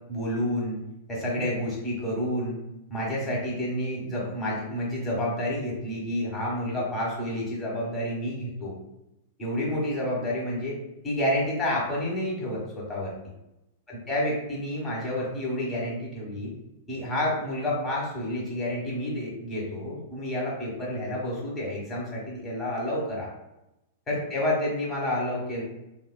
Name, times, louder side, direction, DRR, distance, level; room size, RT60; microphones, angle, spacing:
voice 1, 0.1-0.8 1.1-2.6 2.9-8.7 9.4-13.1 13.9-16.5 16.9-23.3 24.1-25.6, left 1 dB, 20° left, -4 dB, 1.3 m, -29 dB
3.2 x 2.3 x 2.2 m, 0.90 s
figure-of-eight pair, 100°, 0 cm